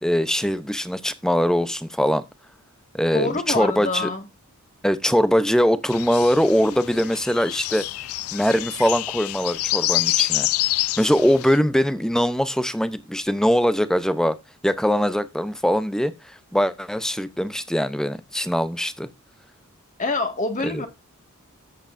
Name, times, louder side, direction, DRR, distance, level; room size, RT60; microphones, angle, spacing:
voice 1, 0.0-2.2 2.9-4.1 4.8-7.8 8.3-10.5 11.0-14.4 14.6-16.1 16.5-19.1 20.6-20.8, equal, 5° left, 0.7 m, -22 dB
voice 2, 3.1-4.2 20.0-20.9, left 2 dB, 35° left, 2.0 m, -25 dB
sound 1, 5.9-11.6, left 16 dB, 75° left, 0.5 m, -27 dB
13.5 x 8.1 x 2.6 m
head